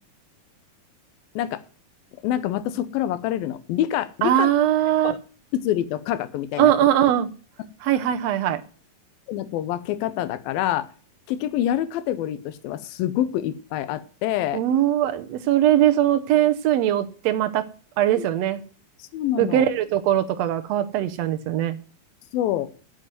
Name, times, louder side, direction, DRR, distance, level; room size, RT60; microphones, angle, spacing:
voice 1, 2.2-4.5 5.0-5.2 5.5-6.7 9.3-10.9 11.3-14.6 18.2-18.3 19.0-19.6 22.3-22.7, left 12 dB, 90° left, 14 dB, 2.6 m, -26 dB
voice 2, 4.2-5.2 6.6-7.3 7.8-8.6 14.5-17.6 18.0-18.6 19.4-21.8, right 11 dB, 90° right, 8 dB, 1.4 m, -21 dB
8.8 x 7.9 x 9.3 m, 0.41 s
omnidirectional pair, 4.1 m